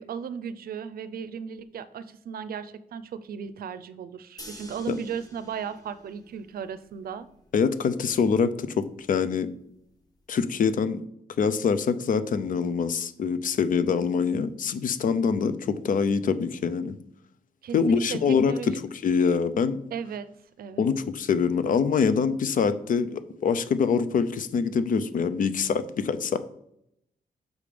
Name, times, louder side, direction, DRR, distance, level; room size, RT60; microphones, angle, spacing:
voice 1, 0.0-7.3 17.6-18.8 19.9-20.3 20.6-20.9, right 7 dB, 70° right, 14 dB, 0.5 m, -36 dB
sound 1, 4.4-10.4, left 1 dB, 25° left, 1.4 m, -51 dB
voice 2, 7.5-9.5 10.3-11.0 11.4-17.0 17.7-18.5 19.0-19.8 20.8-26.4, left 6 dB, 60° left, 13 dB, 0.6 m, -24 dB
6.3 x 5.1 x 5.0 m, 0.74 s
wide cardioid pair, 180°, 16 cm